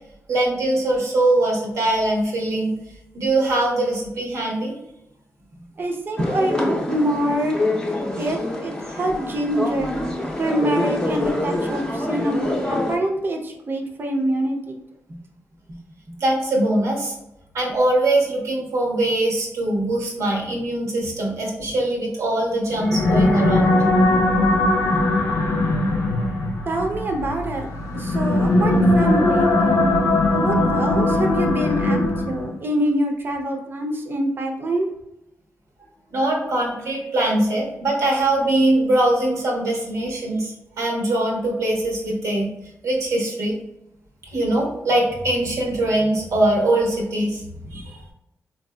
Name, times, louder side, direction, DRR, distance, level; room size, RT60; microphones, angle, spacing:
voice 1, 0.3-2.7 3.1-4.7 16.2-17.1 17.5-23.7 36.1-42.5 42.8-43.5 44.3-47.4 47.7-48.0, right 1 dB, 85° right, -2 dB, 1.0 m, -22 dB
voice 2, 5.8-7.6 8.2-9.9 10.4-14.7 15.1-15.2 15.7-15.8 24.9-25.1 26.7-29.9 30.3-32.0 32.3-34.9 47.6-47.9, right 1 dB, 45° right, 2 dB, 0.6 m, -25 dB
sound 1, 6.2-13.0, left 1 dB, 15° left, 0.6 m, -26 dB
sound 2, 22.7-32.6, left 2 dB, 85° left, 0.6 m, -20 dB
4.0 x 2.6 x 2.2 m, 0.86 s
cardioid pair, 100°, 5 cm